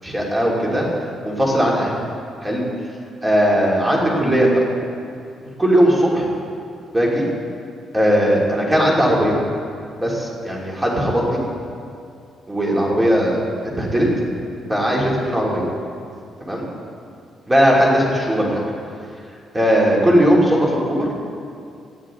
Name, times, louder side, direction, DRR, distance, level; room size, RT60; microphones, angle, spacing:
voice 1, 0.0-0.8 1.2-1.9 2.4-2.6 3.2-4.5 5.6-6.2 6.9-7.3 7.9-9.3 10.0-11.4 12.5-13.4 13.8-14.1 14.7-15.6 16.4-16.6 17.5-18.6 19.5-21.1, equal, 10° right, -3 dB, 2.8 m, -18 dB
18.5 x 12.5 x 3.8 m, 2.4 s
cardioid pair, 155°, 0 cm